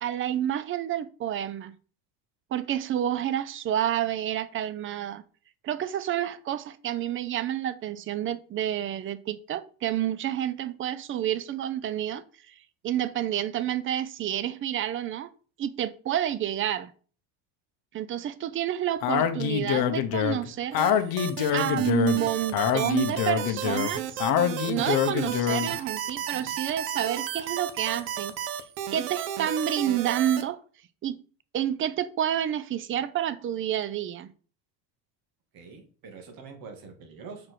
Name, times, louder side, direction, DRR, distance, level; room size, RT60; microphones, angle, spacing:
voice 1, 0.0-1.7 2.5-5.2 5.6-12.2 12.5-12.6 12.8-15.3 15.6-16.9 17.9-20.8 21.5-24.2 24.6-28.3 28.9-30.6 31.0-31.2 31.5-34.3, right 11 dB, 25° right, 0.5 m, -29 dB
Speech, 19.0-25.8, left 9 dB, 50° left, 1.0 m, -26 dB
sound 1, 20.8-30.4, right 10 dB, 80° right, 1.1 m, -33 dB
voice 2, 35.5-37.5, right 5 dB, 45° right, 2.1 m, -45 dB
6.1 x 4.9 x 4.6 m
cardioid pair, 140°, 47 cm